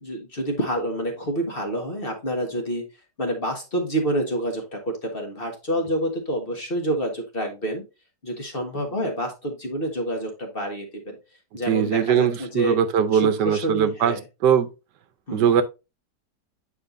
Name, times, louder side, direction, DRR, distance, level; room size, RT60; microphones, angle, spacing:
voice 1, 0.0-2.8 3.2-7.8 8.2-11.2 11.5-12.8 13.1-14.2 15.3-15.6, right 1 dB, 35° left, 1.4 m, -28 dB
voice 2, 11.7-14.1 14.4-14.7 15.3-15.6, right 8 dB, 75° right, 1.3 m, -20 dB
8.6 x 4.9 x 2.5 m
omnidirectional pair, 1.9 m